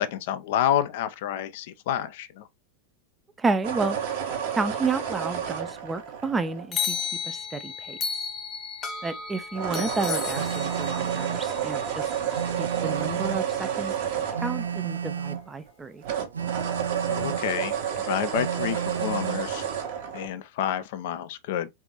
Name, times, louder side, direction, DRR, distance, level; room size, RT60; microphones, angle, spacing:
voice 1, 0.0-2.5 17.1-19.7 20.1-21.7, left 11 dB, 50° left, 0.4 m, -29 dB
voice 2, 3.4-4.0 4.5-7.0 7.2-8.0 9.0-12.1 12.6-13.9 14.4-16.0, right 4 dB, 15° right, 0.5 m, -30 dB
sound 1, 3.6-7.1 9.5-15.7 16.0-20.3, right 8 dB, 50° right, 1.2 m, -30 dB
sound 2, 6.7-12.8, left 6 dB, 25° left, 0.9 m, -34 dB
Telephone, 10.3-11.5 12.3-13.5 14.3-15.5 16.3-17.5 18.3-19.5, right 8 dB, 75° right, 0.3 m, -32 dB
3.9 x 3.4 x 2.9 m
figure-of-eight pair, 90°, 0 cm